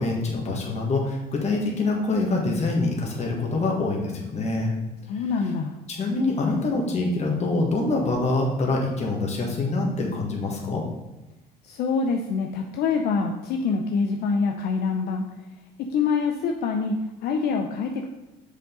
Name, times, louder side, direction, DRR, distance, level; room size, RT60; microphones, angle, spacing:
voice 1, 0.0-4.7 5.9-10.8, left 2 dB, 40° left, 0 dB, 1.7 m, -25 dB
voice 2, 5.1-5.7 11.6-15.2 15.9-18.1, left 5 dB, 70° left, 3 dB, 0.6 m, -25 dB
6.6 x 5.2 x 3.9 m, 1.0 s
cardioid pair, 110°, 17 cm